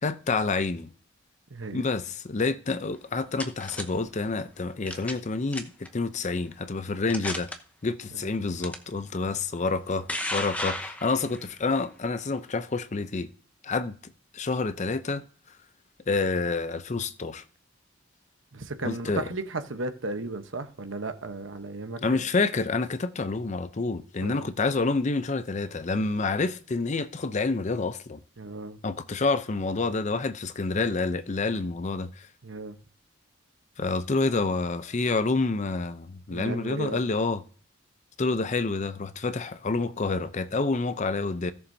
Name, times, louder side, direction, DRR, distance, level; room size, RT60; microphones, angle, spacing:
voice 1, 0.0-0.9 1.7-7.5 7.8-13.3 13.6-15.2 16.1-17.4 18.8-19.3 22.0-28.2 28.8-32.3 33.8-37.4 38.2-41.5, left 3 dB, 35° left, 0.6 m, -28 dB
voice 2, 1.5-1.8 18.5-22.0 24.2-24.4 28.4-28.8 32.4-32.7 36.3-37.0, right 2 dB, 70° right, 1.0 m, -35 dB
sound 1, 2.9-3.8 4.9-5.2 5.5-5.9 6.5-6.6 7.1-7.6 8.6-8.8 9.7-11.4, left 1 dB, 5° left, 0.9 m, -33 dB
16.5 x 7.0 x 2.7 m
head